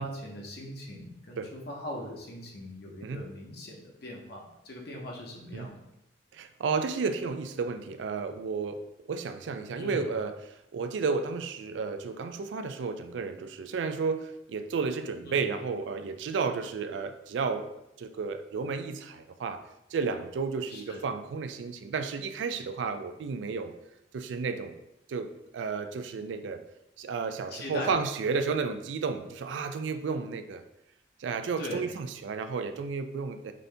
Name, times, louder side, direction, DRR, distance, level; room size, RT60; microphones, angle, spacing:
voice 1, 0.0-5.9 9.8-10.0 15.2-15.4 20.7-21.0 27.5-27.9 31.6-31.8, left 1 dB, 60° left, 0 dB, 0.8 m, -40 dB
voice 2, 6.3-17.7 18.0-19.6 19.9-23.7 24.1-24.8 25.1-25.3 25.5-26.6 27.0-30.6 31.2-33.5, right 5 dB, 75° right, 9 dB, 0.3 m, -32 dB
4.0 x 2.7 x 3.3 m, 0.85 s
head